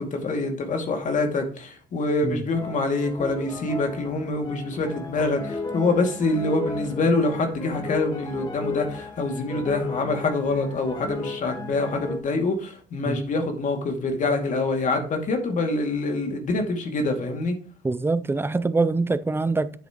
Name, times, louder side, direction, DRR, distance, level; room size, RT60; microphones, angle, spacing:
voice 1, 0.0-17.5, left 3 dB, 50° left, 2.4 m, -25 dB
sound 1, 2.5-12.2, left 3 dB, 25° left, 1.5 m, -35 dB
voice 2, 17.8-19.7, right 3 dB, 15° right, 0.5 m, -24 dB
9.1 x 8.4 x 3.0 m
cardioid pair, 110°, 17 cm